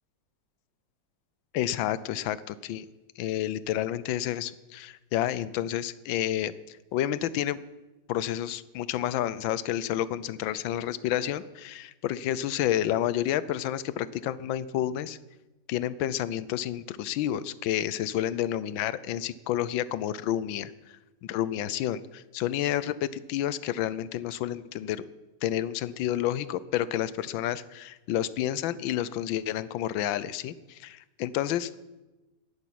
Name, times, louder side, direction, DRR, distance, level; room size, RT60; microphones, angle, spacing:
voice 1, 1.5-2.8 3.2-7.6 8.1-15.2 15.7-20.7 21.3-25.0 25.4-31.7, left 12 dB, 80° left, 17 dB, 1.4 m, -30 dB
10.5 x 10.5 x 10.0 m, 1.1 s
omnidirectional pair, 2.1 m